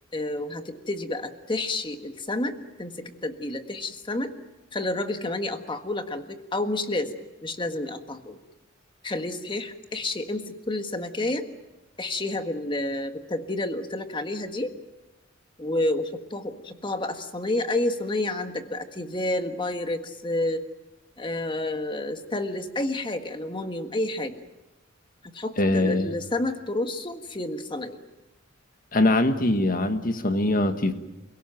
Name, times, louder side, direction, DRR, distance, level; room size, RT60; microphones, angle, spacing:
voice 1, 0.1-4.3 4.7-7.1 7.4-8.4 9.0-11.4 12.0-14.7 15.6-20.6 21.2-24.3 25.2-28.0, left 2 dB, 25° left, 7 dB, 1.5 m, -30 dB
voice 2, 25.6-26.1 28.9-30.9, left 2 dB, 45° left, 8 dB, 1.6 m, -22 dB
29.0 x 17.0 x 9.1 m, 1.0 s
head